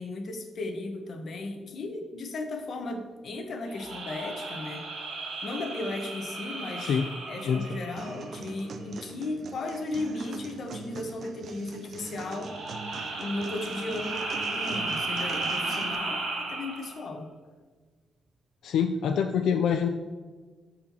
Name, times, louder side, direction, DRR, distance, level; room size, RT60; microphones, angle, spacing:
voice 1, 0.0-4.9 5.4-7.0 7.3-12.5 13.2-17.3, left 2 dB, 50° left, 4 dB, 0.9 m, -35 dB
sound 1, 3.7-8.5 12.3-17.0, right 2 dB, 85° right, 1.6 m, -34 dB
sound 2, 8.0-16.0, right 4 dB, 50° right, 0.5 m, -42 dB
voice 2, 18.6-19.9, left 7 dB, 80° left, 5 dB, 0.3 m, -25 dB
13.0 x 4.3 x 2.8 m, 1.4 s
wide cardioid pair, 170°, 0 cm